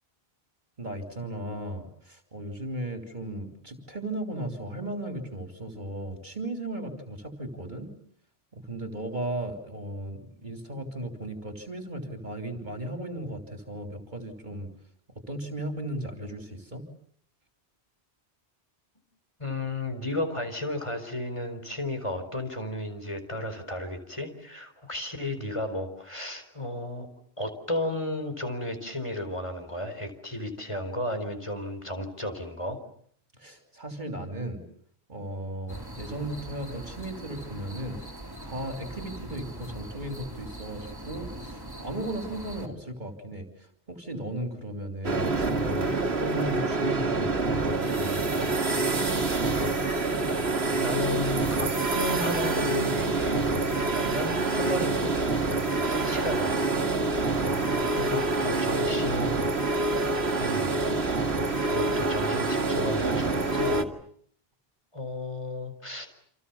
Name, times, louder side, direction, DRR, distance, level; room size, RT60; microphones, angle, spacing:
voice 1, 0.8-7.9 8.5-14.7 15.3-16.8 33.3-34.6 35.1-38.0 38.4-48.5 57.4-58.1, right 1 dB, 45° right, 5 dB, 3.4 m, -36 dB
voice 2, 19.4-27.1 27.4-32.8 49.9-55.1 55.5-56.7 57.4-59.5 60.4-60.8 61.6-63.9 64.9-66.1, left 1 dB, 30° left, 7 dB, 4.6 m, -33 dB
sound 1, 35.7-42.7, right 1 dB, 20° right, 3.6 m, -41 dB
sound 2, 45.0-63.8, right 3 dB, 80° right, 2.3 m, -26 dB
28.5 x 27.5 x 7.1 m, 0.63 s
omnidirectional pair, 1.1 m